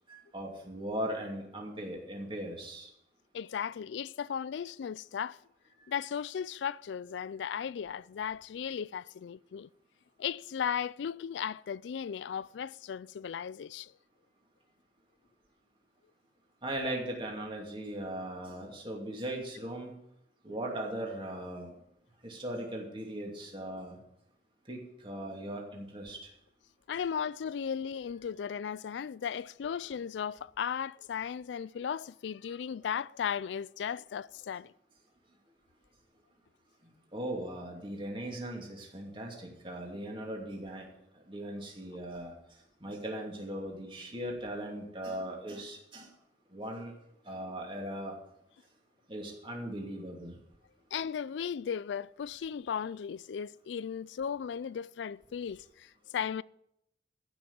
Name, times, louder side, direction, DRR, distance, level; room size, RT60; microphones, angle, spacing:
voice 1, 0.1-2.9 16.6-19.9 20.4-21.7 22.2-24.0 24.7-26.3 37.1-40.9 41.3-42.3 42.8-46.1 46.5-46.9 47.2-48.1 49.1-50.4, right 1 dB, 30° right, 2.6 m, -38 dB
voice 2, 3.3-5.4 5.9-9.7 10.2-13.9 26.9-34.7 50.9-56.4, left 7 dB, 80° left, 0.3 m, -36 dB
14.5 x 6.0 x 6.9 m
head